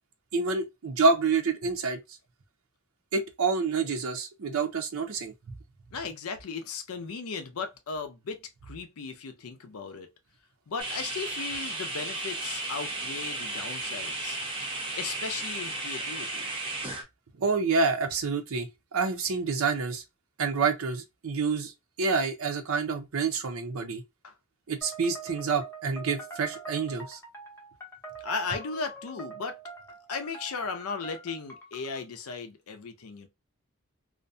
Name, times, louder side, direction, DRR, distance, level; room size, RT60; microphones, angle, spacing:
voice 1, 0.3-2.0 3.1-5.3 17.4-20.0 20.4-21.7 22.0-24.0 24.7-27.2, right 4 dB, 65° right, 0.5 m, -28 dB
voice 2, 5.9-10.1 10.7-16.5 24.2-24.3 28.2-29.6 30.1-33.3, left 5 dB, 70° left, 0.5 m, -36 dB
sound 1, 10.8-17.0, right 2 dB, 25° right, 0.6 m, -34 dB
sound 2, 24.8-32.0, right 4 dB, 10° left, 0.6 m, -44 dB
2.5 x 2.2 x 2.5 m
head